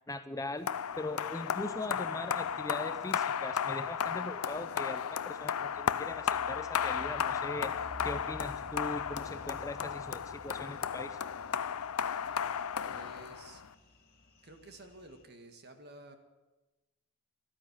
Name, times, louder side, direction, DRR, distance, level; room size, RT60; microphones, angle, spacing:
voice 1, 0.1-0.7 1.0-11.2, left 2 dB, 15° left, 10 dB, 0.5 m, -40 dB
sound 1, 0.6-15.2, equal, 45° left, 2.3 m, -54 dB
sound 2, 0.7-13.7, left 8 dB, 80° left, 0.5 m, -34 dB
voice 2, 12.8-13.6 14.4-16.2, right 2 dB, 45° right, 6 dB, 1.7 m, -52 dB
14.5 x 12.5 x 7.3 m, 1.1 s
head